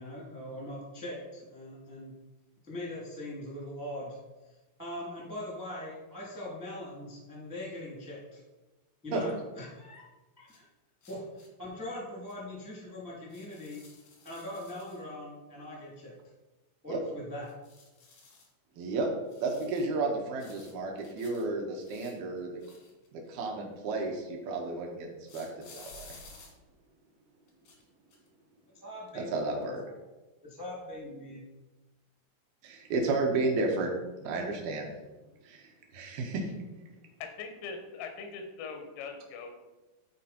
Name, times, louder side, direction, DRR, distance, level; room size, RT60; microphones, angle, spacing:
voice 1, 0.0-2.1 2.7-4.2 4.8-8.4 9.0-10.0 10.4-10.6 11.1-13.8 14.2-16.1 16.8-17.5 28.7-29.3 30.4-31.4, left 1 dB, 5° right, -5 dB, 0.5 m, -41 dB
sound 1, 10.5-10.6 11.0-11.5 12.3-12.4 13.3-15.0 17.4-18.5 19.3-19.9 20.4-21.4 21.8-23.3 25.3-26.5 27.5-27.8 28.1-28.3, left 3 dB, 75° left, 1.7 m, -54 dB
voice 2, 18.8-19.1 19.4-22.5 23.1-26.2 29.2-29.9 32.6-33.9 34.2-34.9 35.4-35.7 35.9-36.5, right 3 dB, 75° right, 1 dB, 2.3 m, -32 dB
voice 3, 37.2-39.5, left 5 dB, 90° left, 5 dB, 3.9 m, -41 dB
12.0 x 4.5 x 4.3 m, 1.1 s
omnidirectional pair, 6.0 m